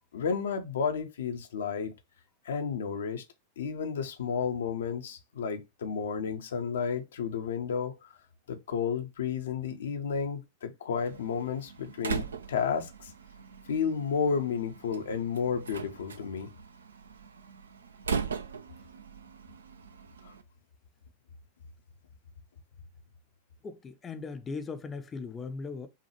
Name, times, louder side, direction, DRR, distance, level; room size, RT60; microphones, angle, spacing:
voice 1, 0.1-1.9 2.4-3.2 3.6-8.1 8.5-13.1 13.7-16.5 20.2-20.3, left 6 dB, 65° left, 0.6 m, -32 dB
Slam, 11.0-20.4, right 6 dB, 70° right, 0.4 m, -40 dB
voice 2, 23.6-25.9, left 4 dB, 20° left, 0.5 m, -38 dB
5.6 x 2.3 x 3.0 m
figure-of-eight pair, 90°, 0 cm